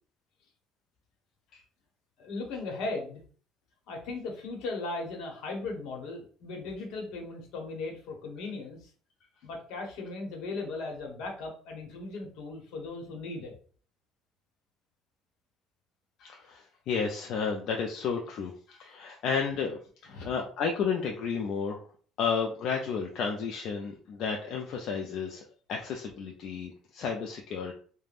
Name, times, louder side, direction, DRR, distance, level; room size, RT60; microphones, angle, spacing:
voice 1, 2.2-3.2 3.9-8.9 9.4-13.5 20.1-20.3, left 3 dB, 75° left, 1 dB, 1.0 m, -37 dB
voice 2, 16.2-21.8 22.2-25.4 25.7-27.7, left 5 dB, 55° left, 1 dB, 0.4 m, -32 dB
2.4 x 2.2 x 3.3 m, 0.44 s
cardioid pair, 145°, 0 cm